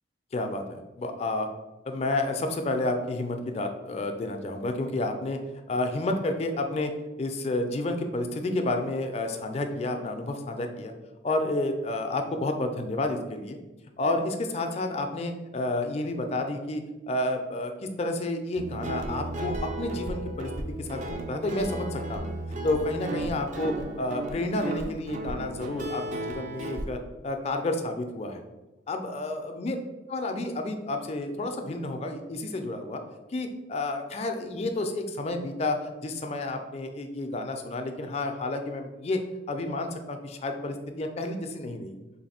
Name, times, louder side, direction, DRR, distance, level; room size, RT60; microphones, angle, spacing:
voice 1, 0.3-1.5 1.9-5.4 5.7-6.9 7.2-10.9 11.2-13.6 14.0-20.5 20.8-22.3 22.6-28.4 28.9-29.8 30.1-33.0 33.3-39.2 39.5-42.0, left 2 dB, 35° left, 5 dB, 0.3 m, -30 dB
Guitar, 18.6-26.8, right 2 dB, 40° right, 0.4 m, -34 dB
3.2 x 2.5 x 4.2 m, 1.1 s
head